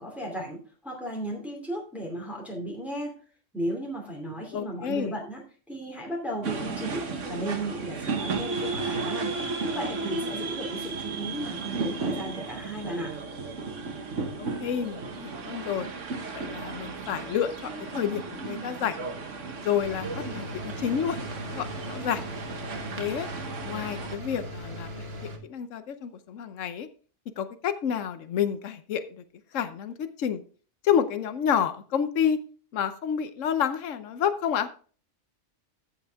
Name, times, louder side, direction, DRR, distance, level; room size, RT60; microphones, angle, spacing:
voice 1, 0.0-3.2 3.5-9.3 9.6-13.1, right 1 dB, ahead, -1 dB, 2.5 m, -35 dB
voice 2, 4.5-5.1 14.4-15.9 16.3-19.0 19.6-22.2 23.0-23.3 23.6-25.1 25.4-26.9 27.4-29.0 29.5-30.4 30.8-32.4 32.7-34.7, left 8 dB, 85° left, 11 dB, 1.2 m, -29 dB
sound 1, 6.4-24.2, right 4 dB, 75° right, 1.7 m, -34 dB
sound 2, 19.8-25.4, equal, 55° right, 1.8 m, -39 dB
14.5 x 5.4 x 3.5 m, 0.40 s
omnidirectional pair, 1.3 m